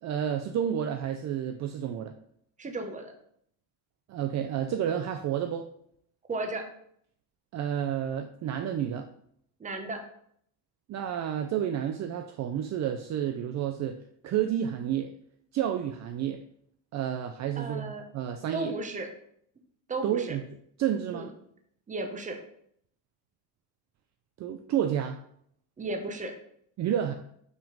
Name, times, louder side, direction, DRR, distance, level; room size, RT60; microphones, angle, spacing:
voice 1, 0.0-2.1 4.1-5.7 7.5-9.1 10.9-14.0 14.2-15.1 15.5-16.4 16.9-18.7 20.0-20.4 20.8-21.3 24.4-25.2 26.8-27.1, right 9 dB, 45° right, 6 dB, 0.5 m, -30 dB
voice 2, 2.6-3.1 6.3-6.6 9.6-10.0 17.6-18.0 18.5-19.1 19.9-20.4 21.1-21.3 21.9-22.4 25.8-26.3, right 2 dB, 20° right, 4 dB, 1.1 m, -34 dB
6.2 x 5.1 x 5.2 m, 0.68 s
cardioid pair, 150°, 38 cm